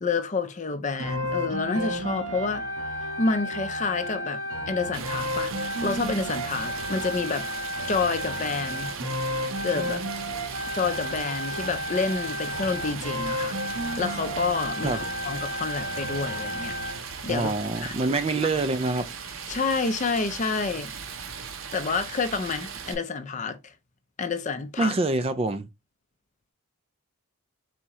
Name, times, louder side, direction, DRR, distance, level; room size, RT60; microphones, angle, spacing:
voice 1, 0.0-2.6 3.2-4.4 4.7-5.5 5.8-7.5 7.9-8.9 9.6-10.0 10.7-13.6 14.0-17.5 17.8-18.2 19.5-20.9 21.7-23.7 24.2-24.9, left 4 dB, 35° left, 0.5 m, -29 dB
sound 1, 1.0-17.0, equal, 90° right, 1.1 m, -32 dB
Stream, 4.9-22.9, right 6 dB, 65° right, 0.7 m, -38 dB
voice 2, 17.3-19.1 24.8-25.7, right 3 dB, 25° right, 0.3 m, -26 dB
4.2 x 3.6 x 2.9 m
head